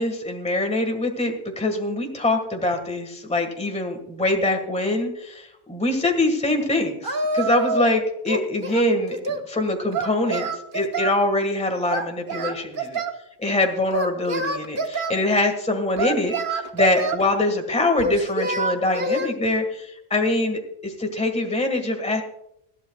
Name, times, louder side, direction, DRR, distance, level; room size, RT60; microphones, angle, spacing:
voice 1, 0.0-13.0 13.4-22.2, left 2 dB, 5° left, 5 dB, 1.6 m, -24 dB
Singing, 7.0-8.0 8.3-9.5 9.9-11.2 11.9-13.2 13.9-15.1 16.0-17.3 18.0-19.3, right 3 dB, 45° right, 1.2 m, -27 dB
20.0 x 14.0 x 2.3 m, 0.78 s
omnidirectional pair, 1.3 m